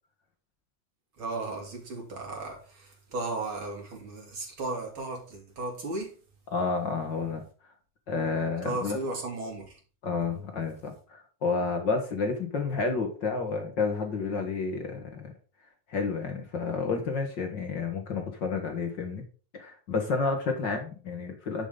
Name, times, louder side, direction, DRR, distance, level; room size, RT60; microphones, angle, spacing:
voice 1, 1.2-6.1 8.6-9.8, right 2 dB, 35° right, 3.5 m, -35 dB
voice 2, 6.5-7.4 8.1-9.0 10.0-15.3 15.9-19.2 19.5-21.7, left 4 dB, 45° left, 1.5 m, -30 dB
10.5 x 7.4 x 3.9 m
omnidirectional pair, 4.3 m